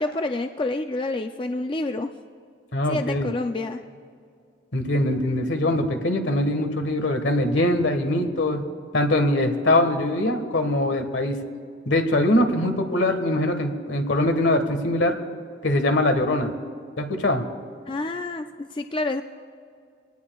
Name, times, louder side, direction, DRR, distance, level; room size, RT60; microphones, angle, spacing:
voice 1, 0.0-2.1 2.9-3.8 17.9-19.2, left 2 dB, 25° left, 6 dB, 0.4 m, -28 dB
voice 2, 2.7-3.3 4.7-8.6 8.9-11.4 11.9-15.2 15.6-16.5 17.0-17.4, left 1 dB, 75° left, 6 dB, 1.5 m, -22 dB
25.0 x 18.0 x 2.3 m, 2.3 s
head